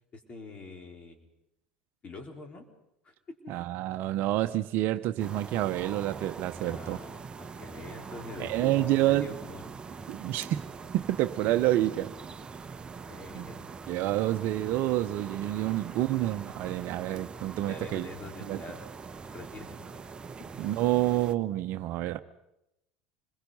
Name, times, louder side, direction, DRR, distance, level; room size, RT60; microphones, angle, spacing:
voice 1, 0.1-1.3 2.0-2.7 3.0-3.5 6.6-9.7 13.1-13.7 17.2-18.9 19.3-20.0, left 3 dB, 35° left, 4 dB, 4.0 m, -45 dB
voice 2, 3.5-7.0 8.4-9.3 10.1-10.6 10.9-12.1 13.3-13.5 13.9-18.1 18.5-18.6 20.6-22.2, right 15 dB, 55° right, 10 dB, 0.9 m, -28 dB
sound 1, 5.2-21.3, right 5 dB, 25° right, 1.0 m, -43 dB
26.0 x 21.5 x 5.5 m, 0.83 s
hypercardioid pair, 80°, 4 cm